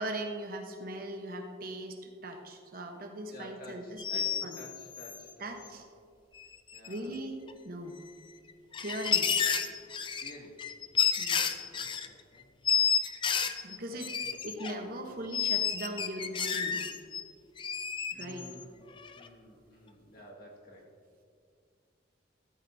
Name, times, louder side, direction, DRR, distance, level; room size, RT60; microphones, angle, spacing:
voice 1, 0.0-4.6 5.4-5.8 6.9-8.0 8.8-9.3 11.2-11.4 13.6-14.1 14.4-16.8 18.1-18.4, right 1 dB, 50° right, 4 dB, 1.0 m, -39 dB
voice 2, 3.3-5.7 6.7-7.2 10.2-10.7 11.4-12.5 13.9-14.4 15.1-15.2 18.1-18.8 19.1-20.9, equal, 50° left, -2 dB, 1.9 m, -51 dB
sound 1, 4.0-5.2 6.4-6.5 6.7-7.2 7.5-7.6 8.5-12.1 12.7-14.7 15.3-17.2 17.6-18.6 19.0-19.3, left 7 dB, 25° left, 0.5 m, -30 dB
14.0 x 13.0 x 2.7 m, 2.3 s
head